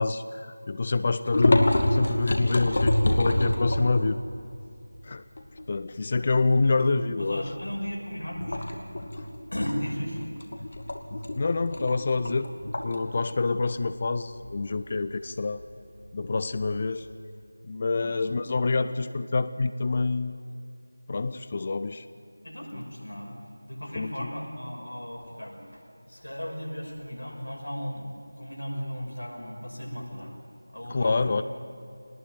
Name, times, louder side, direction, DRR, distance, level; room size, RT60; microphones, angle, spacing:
voice 1, 0.0-4.2 5.0-5.2 5.7-7.4 11.3-12.5 12.8-15.7 16.1-17.1 17.7-20.3 21.1-22.0 23.9-24.3 30.9-31.4, left 3 dB, 30° left, 13 dB, 0.6 m, -27 dB
sound 1, 1.2-4.2 4.6-4.7 5.1-6.3 6.7-6.9 7.3-7.9 8.3-17.1, left 1 dB, 45° left, 2.4 m, -27 dB
voice 2, 7.2-8.7 9.5-10.2 17.9-18.3 22.4-23.4 23.6-30.4 30.7-31.4, equal, 70° left, 0 dB, 6.1 m, -36 dB
23.5 x 20.0 x 9.5 m, 2.5 s
figure-of-eight pair, 170°, 0 cm